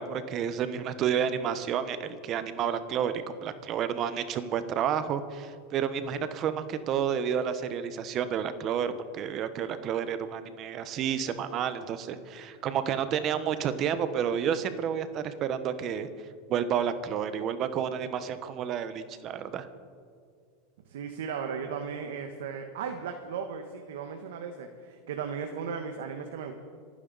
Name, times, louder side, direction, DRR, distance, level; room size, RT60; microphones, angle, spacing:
voice 1, 0.0-16.1 16.5-19.7, right 8 dB, 40° right, 11 dB, 1.0 m, -30 dB
voice 2, 20.9-26.5, right 6 dB, 80° right, 5 dB, 1.2 m, -36 dB
27.0 x 9.9 x 4.1 m, 2.1 s
supercardioid pair, 125°, 0 cm